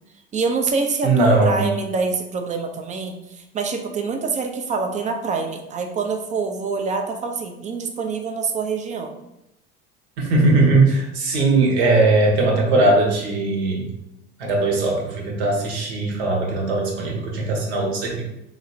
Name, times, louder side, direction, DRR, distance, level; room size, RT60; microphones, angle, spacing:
voice 1, 0.3-9.1, right 4 dB, 25° right, 4 dB, 0.3 m, -25 dB
voice 2, 1.0-1.6 10.2-13.8 14.4-18.2, right 2 dB, 70° right, -1 dB, 0.9 m, -19 dB
3.6 x 2.0 x 2.6 m, 0.87 s
hypercardioid pair, 65°, 33 cm